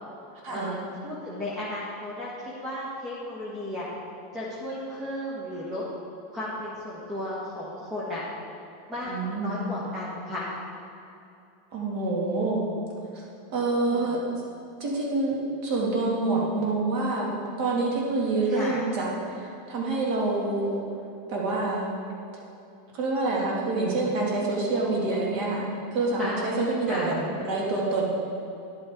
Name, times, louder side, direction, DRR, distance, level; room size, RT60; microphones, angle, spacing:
voice 1, 0.5-3.9 4.3-5.8 6.3-8.2 8.9-10.5 13.8-14.2 18.5-18.8 26.2-26.4 26.9-27.1, left 1 dB, 15° right, -6 dB, 1.4 m, -34 dB
voice 2, 9.1-9.6 11.7-12.6 13.1-14.2 14.8-17.3 17.6-20.8 21.3-21.9 22.9-25.6 25.9-28.1, right 2 dB, 50° right, -3 dB, 2.4 m, -27 dB
10.5 x 8.7 x 3.8 m, 2.7 s
supercardioid pair, 145°, 0 cm